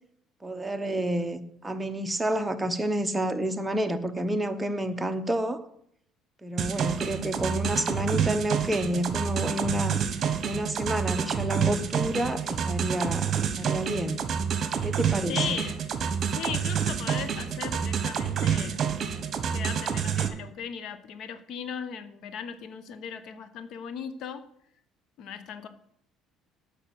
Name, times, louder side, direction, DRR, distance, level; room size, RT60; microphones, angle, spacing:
voice 1, 0.4-5.6 6.4-10.0 10.4-14.2 14.8-15.6, right 1 dB, 10° right, 7 dB, 1.0 m, -29 dB
sound 1, 6.6-20.3, right 7 dB, 45° right, 1.4 m, -28 dB
voice 2, 15.3-15.8 16.3-18.8 19.5-24.4 25.2-25.7, left 7 dB, 65° left, 11 dB, 1.1 m, -37 dB
8.6 x 5.4 x 7.9 m, 0.72 s
supercardioid pair, 90°, 0 cm